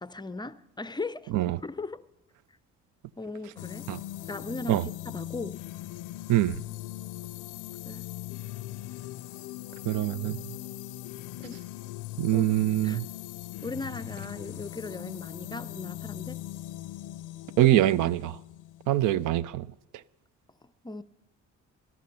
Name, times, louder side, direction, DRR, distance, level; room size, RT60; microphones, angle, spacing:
voice 1, 0.0-1.3 1.6-2.0 3.2-3.9 4.3-5.6 7.8-8.1 11.4-11.6 12.3-12.5 12.8-13.0 13.6-16.4 20.8-21.0, left 3 dB, 15° left, 0.4 m, -38 dB
sound 1, 3.6-19.3, left 15 dB, 85° left, 0.5 m, -40 dB
voice 2, 6.3-6.6 9.9-10.4 12.2-13.0 17.6-18.4 18.9-19.7, right 14 dB, 85° right, 0.5 m, -24 dB
19.0 x 12.0 x 5.8 m
cardioid pair, 90°, 30 cm